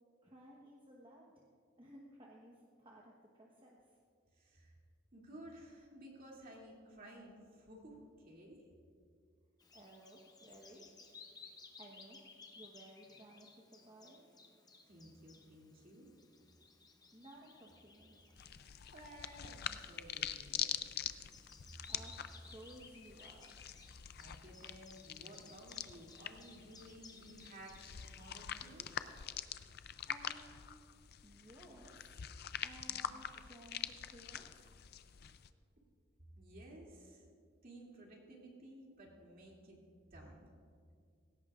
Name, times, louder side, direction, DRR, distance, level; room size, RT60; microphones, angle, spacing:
voice 1, 0.2-1.3 1.8-3.9 9.7-10.8 11.8-12.2 12.5-14.2 17.1-18.3 21.9-23.5 29.5-29.7 30.1-30.8 31.2-32.2 32.6-34.7, right 1 dB, 25° right, -3 dB, 1.1 m, -58 dB
voice 2, 4.3-4.7 5.1-8.7 14.9-16.1 18.6-20.9 24.2-28.9 32.9-33.1 36.4-37.3 37.6-39.8 40.1-40.5, right 1 dB, 45° right, -2 dB, 2.7 m, -55 dB
Bird vocalization bird call bird song, 9.6-29.3, left 4 dB, 20° left, 0.8 m, -60 dB
sound 1, 18.4-35.5, left 10 dB, 50° left, 0.4 m, -45 dB
19.0 x 16.5 x 2.5 m, 2.3 s
head